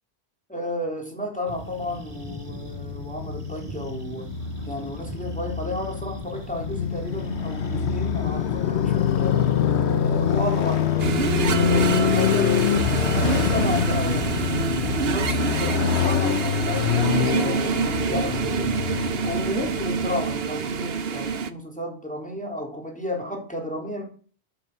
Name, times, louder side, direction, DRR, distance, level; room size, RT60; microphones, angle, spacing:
voice 1, 0.5-4.3 4.7-9.5 10.0-12.6 12.9-18.9 19.2-24.0, left 1 dB, 5° left, 1 dB, 3.5 m, -32 dB
sound 1, 1.5-20.8, right 1 dB, 35° right, 2.2 m, -43 dB
Motorcycle, 2.0-20.1, left 9 dB, 90° left, 1.1 m, -25 dB
sound 2, 11.0-21.5, right 6 dB, 65° right, 1.1 m, -26 dB
12.0 x 8.6 x 6.8 m, 0.43 s
omnidirectional pair, 1.1 m